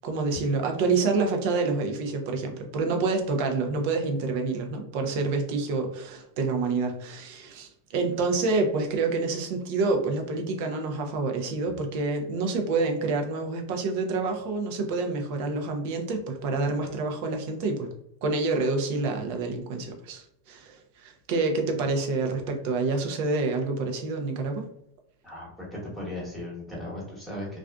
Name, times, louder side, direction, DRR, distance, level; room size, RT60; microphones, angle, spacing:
voice 1, 0.0-17.9 18.2-24.7, right 3 dB, 60° right, 4 dB, 0.6 m, -27 dB
voice 2, 25.2-27.6, left 1 dB, 5° right, -6 dB, 1.1 m, -37 dB
2.4 x 2.4 x 2.2 m, 0.73 s
hypercardioid pair, 115°, 0 cm